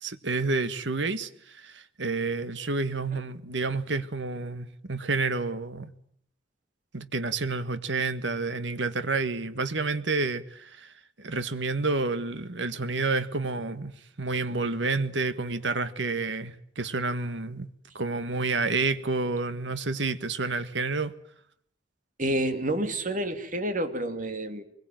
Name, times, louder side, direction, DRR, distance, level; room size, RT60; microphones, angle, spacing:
voice 1, 0.0-5.9 6.9-13.9 14.2-17.7 18.0-21.1, right 3 dB, 80° right, 1.7 m, -29 dB
voice 2, 22.2-24.6, right 1 dB, 45° right, 2.8 m, -29 dB
24.0 x 21.5 x 9.3 m
head